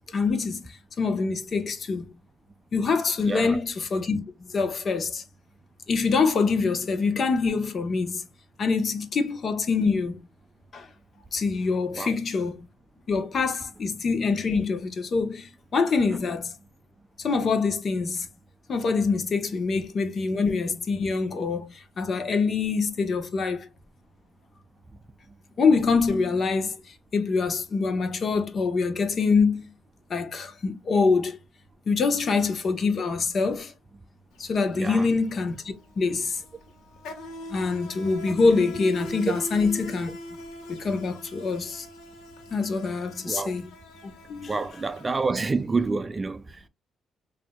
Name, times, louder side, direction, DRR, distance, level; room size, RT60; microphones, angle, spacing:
voice 1, 0.1-2.1 2.7-4.2 4.5-5.2 5.9-8.3 8.6-10.2 10.7-10.9 11.3-12.7 13.1-16.5 17.2-18.3 18.7-23.7 25.6-26.8 27.1-29.7 30.1-31.4 31.9-33.7 34.4-36.4 37.5-40.1 40.7-41.9 42.5-43.7 44.3-44.7, left 4 dB, 50° left, 1.0 m, -25 dB
voice 2, 3.3-3.6 12.0-12.1 34.8-35.0 43.3-43.5 44.5-46.7, right 4 dB, 25° right, 0.3 m, -28 dB
Insect, 34.3-34.5 34.8-45.8, equal, 85° left, 1.2 m, -41 dB
6.1 x 2.7 x 2.2 m
cardioid pair, 90°, 0 cm